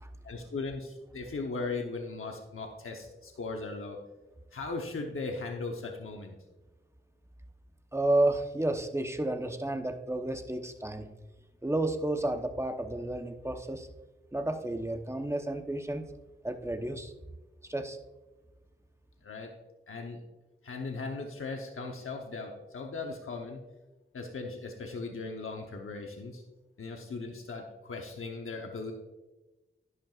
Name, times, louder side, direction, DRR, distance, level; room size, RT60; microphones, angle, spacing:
voice 1, 0.2-4.0 4.5-6.4 19.2-19.5 19.9-20.2 20.6-23.6 24.1-26.4 26.8-28.9, left 3 dB, 90° left, 2 dB, 1.0 m, -38 dB
voice 2, 7.9-11.1 11.6-13.9 14.3-16.1 16.4-17.1 17.6-18.0, right 1 dB, 15° right, 6 dB, 0.9 m, -31 dB
11.0 x 10.5 x 2.5 m, 1.1 s
wide cardioid pair, 60°, 21 cm